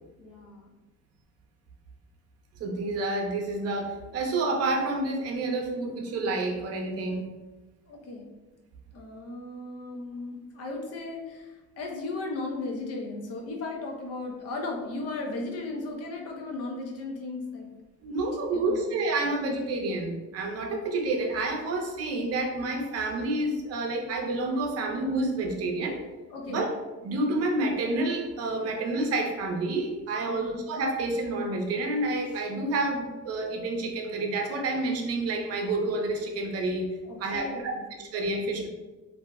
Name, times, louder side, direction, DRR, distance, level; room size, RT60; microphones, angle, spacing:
voice 1, 0.2-0.7 7.9-8.3 8.9-17.7 18.5-18.9 26.3-26.7 30.3-30.5 37.0-37.9, left 3 dB, 50° left, 1 dB, 0.6 m, -36 dB
voice 2, 2.6-7.3 18.0-26.0 26.5-26.7 27.0-36.9 37.2-38.7, right 2 dB, 50° right, 2 dB, 0.6 m, -29 dB
2.6 x 2.0 x 3.4 m, 1.1 s
cardioid pair, 150°, 31 cm